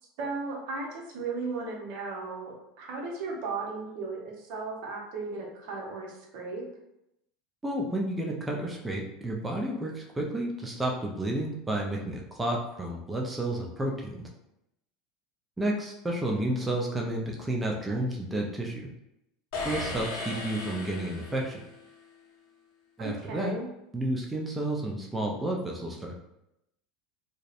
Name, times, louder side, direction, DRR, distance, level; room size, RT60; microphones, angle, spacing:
voice 1, 0.2-6.6 23.0-23.6, right 3 dB, 65° right, 0 dB, 0.7 m, -36 dB
voice 2, 7.6-14.3 15.6-18.9 19.6-21.6 23.0-23.6 23.9-26.2, right 1 dB, 10° right, -1 dB, 0.4 m, -31 dB
sound 1, 19.5-21.8, left 2 dB, 70° left, 0.7 m, -36 dB
2.6 x 2.0 x 2.4 m, 0.84 s
supercardioid pair, 120°, 0 cm